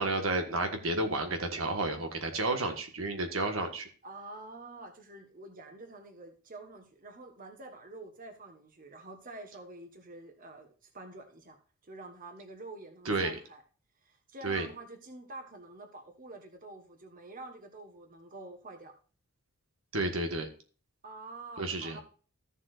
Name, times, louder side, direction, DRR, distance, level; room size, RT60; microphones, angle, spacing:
voice 1, 0.0-3.9 13.0-13.4 14.4-14.7 19.9-20.5 21.6-22.0, right 2 dB, 70° right, 5 dB, 1.5 m, -31 dB
voice 2, 4.0-11.6 11.8-13.6 14.0-18.9 21.0-22.0, right 2 dB, 40° right, 5 dB, 1.3 m, -47 dB
14.5 x 7.2 x 2.5 m, 0.38 s
head